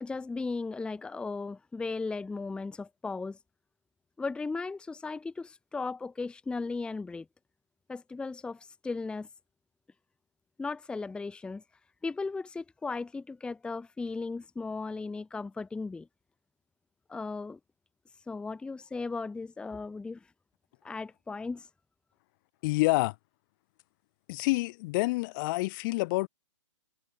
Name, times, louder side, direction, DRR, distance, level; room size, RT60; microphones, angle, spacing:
voice 1, 0.0-3.4 4.2-7.3 7.9-9.3 10.6-11.6 12.0-16.1 17.1-17.6 18.3-20.2 20.8-21.7, left 4 dB, 5° left, 0.8 m, -36 dB
voice 2, 22.6-23.1 24.3-26.3, left 22 dB, 40° left, 1.4 m, -27 dB
hypercardioid pair, 130°, 16 cm